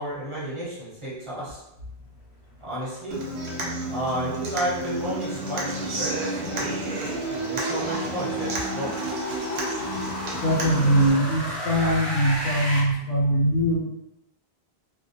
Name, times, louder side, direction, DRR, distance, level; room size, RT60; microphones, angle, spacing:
voice 1, 0.0-1.6 2.6-3.2 3.9-6.8 7.3-8.9, right 1 dB, 35° right, -9 dB, 0.8 m, -32 dB
Human voice / Acoustic guitar, 3.1-11.1, right 1 dB, 85° right, 0.9 m, -30 dB
sound 1, 3.2-12.8, equal, 45° left, 0.5 m, -35 dB
voice 2, 10.4-13.8, right 1 dB, 75° left, -2 dB, 0.8 m, -22 dB
2.2 x 2.0 x 2.7 m, 0.90 s
omnidirectional pair, 1.1 m